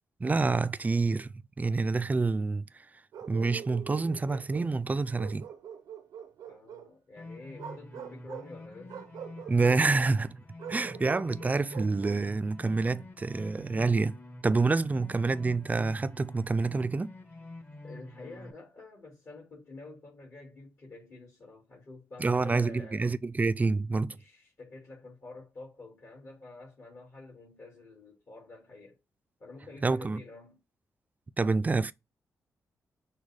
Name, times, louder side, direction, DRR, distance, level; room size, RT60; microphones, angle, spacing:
voice 1, 0.2-2.9 3.3-5.5 9.5-10.4 10.7-14.2 14.4-17.1 22.2-24.2 29.8-30.2 31.4-31.9, right 3 dB, 25° right, 0.4 m, -27 dB
Bark, 3.1-4.7 5.2-6.9 7.5-8.5 8.9-9.8 10.6-12.3, right 8 dB, 85° right, 0.6 m, -44 dB
voice 2, 6.5-9.0 17.8-23.1 24.1-29.0 29.4-30.6, left 3 dB, 55° left, 2.1 m, -48 dB
sound 1, 7.2-18.5, left 2 dB, 30° left, 1.0 m, -47 dB
6.2 x 2.2 x 3.4 m
cardioid pair, 70°, 6 cm